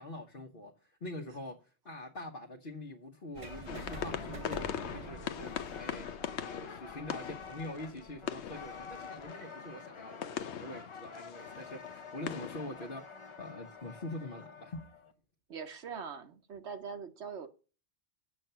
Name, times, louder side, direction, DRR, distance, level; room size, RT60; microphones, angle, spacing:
voice 1, 0.0-1.6 1.8-5.5 5.8-6.1 6.4-14.8, left 1 dB, 55° left, 1.3 m, -44 dB
sound 1, 3.3-9.3, right 3 dB, 35° right, 0.8 m, -49 dB
sound 2, 3.4-15.1, left 5 dB, 30° left, 0.7 m, -49 dB
sound 3, 3.7-12.8, left 9 dB, 85° left, 1.0 m, -41 dB
voice 2, 15.5-17.5, right 6 dB, 85° right, 1.3 m, -42 dB
7.7 x 5.9 x 6.6 m
omnidirectional pair, 1.1 m